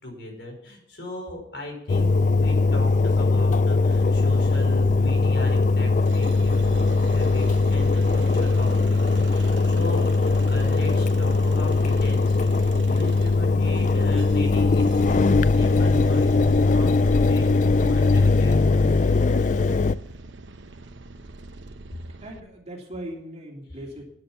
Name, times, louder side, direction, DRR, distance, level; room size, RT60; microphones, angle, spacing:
voice 1, 0.0-17.5 17.8-19.5, left 2 dB, 65° left, 1 dB, 5.2 m, -37 dB
Engine, 1.9-20.0, left 3 dB, 40° left, 0.3 m, -20 dB
sound 1, 3.9-22.4, right 2 dB, 75° right, 0.9 m, -42 dB
voice 2, 22.2-24.0, right 1 dB, 35° right, 0 dB, 3.1 m, -38 dB
12.5 x 10.5 x 5.8 m, 0.78 s
head